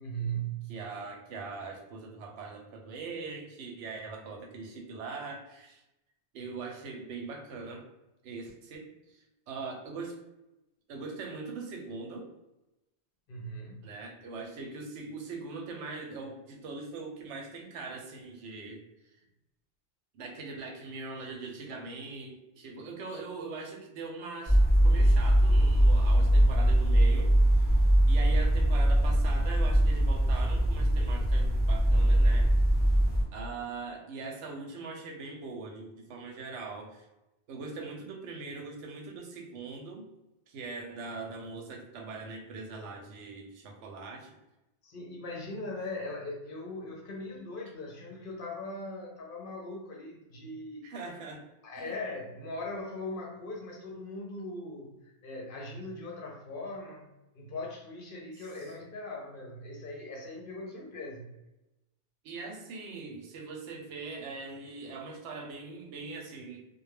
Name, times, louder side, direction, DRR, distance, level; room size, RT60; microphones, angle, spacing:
voice 1, 0.0-0.8 13.3-13.9 44.8-51.0 51.6-57.1 57.3-61.3, equal, 60° left, 0 dB, 0.6 m, -40 dB
voice 2, 0.7-5.8 6.3-7.9 8.2-10.2 10.9-12.3 13.8-19.1 20.1-32.5 33.3-37.1 37.5-40.1 40.5-44.4 50.8-51.4 51.8-52.0 58.4-58.5 62.2-66.7, right 4 dB, 85° right, 2 dB, 0.9 m, -41 dB
sound 1, 24.5-33.2, right 1 dB, 10° left, 0.7 m, -22 dB
2.2 x 2.0 x 3.1 m, 0.95 s
omnidirectional pair, 1.2 m